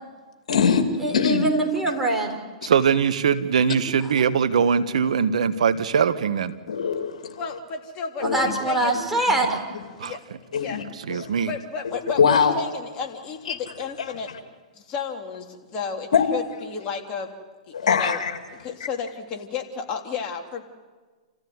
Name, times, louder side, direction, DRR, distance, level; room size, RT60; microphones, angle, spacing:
voice 1, 0.5-0.9 1.1-1.5 6.7-7.4 8.2-8.5 10.5-10.8 11.2-11.3 12.2-12.5 13.5-13.6 16.1-16.2 17.7-18.3, left 6 dB, 80° left, 6 dB, 2.6 m, -21 dB
voice 2, 1.0-2.4 8.2-9.6, right 2 dB, 5° right, 0 dB, 4.7 m, -23 dB
voice 3, 2.6-6.5 10.0-10.1 11.1-11.5, right 7 dB, 75° right, 11 dB, 1.3 m, -21 dB
voice 4, 7.4-8.9 10.0-10.2 10.6-10.8 11.5-14.3 14.7-17.3 17.7-18.2 18.5-20.6, left 5 dB, 35° left, 2 dB, 3.3 m, -32 dB
29.5 x 15.0 x 9.6 m, 1.4 s
hypercardioid pair, 125°, 4 cm